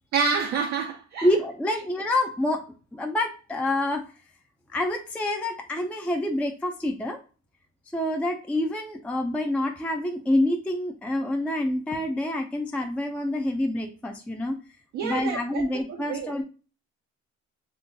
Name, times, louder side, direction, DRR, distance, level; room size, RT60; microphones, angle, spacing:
voice 1, 0.1-1.3 14.9-16.3, right 5 dB, 75° right, 0.6 m, -28 dB
voice 2, 1.2-2.6 2.9-4.0 4.7-7.2 7.9-14.5 15.0-16.4, left 1 dB, 5° left, 0.4 m, -27 dB
3.8 x 2.4 x 2.6 m
cardioid pair, 90°, 30 cm